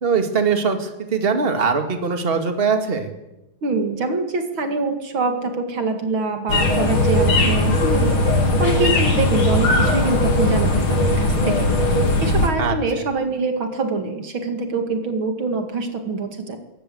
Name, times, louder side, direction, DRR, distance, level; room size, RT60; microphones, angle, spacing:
voice 1, 0.0-3.1 12.6-12.7, right 5 dB, 25° right, 6 dB, 2.3 m, -21 dB
voice 2, 3.6-8.2 8.6-11.7 12.2-16.6, right 3 dB, 70° right, 6 dB, 3.0 m, -24 dB
sound 1, 6.5-12.5, left 1 dB, 80° left, 4.1 m, -18 dB
21.5 x 19.0 x 7.9 m, 0.93 s
omnidirectional pair, 2.3 m